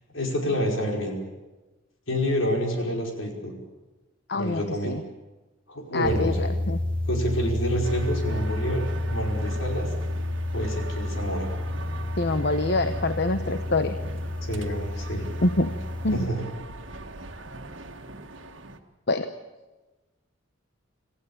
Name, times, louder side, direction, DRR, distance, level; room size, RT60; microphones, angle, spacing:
voice 1, 0.1-1.1 2.1-3.5 4.4-5.0 5.7-6.5 7.1-9.9 10.5-11.5 14.4-15.2 16.1-16.5 16.9-17.0, equal, 75° left, 1 dB, 5.2 m, -28 dB
voice 2, 4.3-5.0 5.9-6.8 12.2-14.0 15.4-15.7 16.0-16.3 19.1-19.3, left 2 dB, 55° left, 9 dB, 0.9 m, -25 dB
sound 1, 6.0-16.3, left 1 dB, 5° left, 1.6 m, -30 dB
sound 2, 7.8-18.8, right 2 dB, 65° right, 1.7 m, -41 dB
26.5 x 15.5 x 8.7 m, 1.2 s
head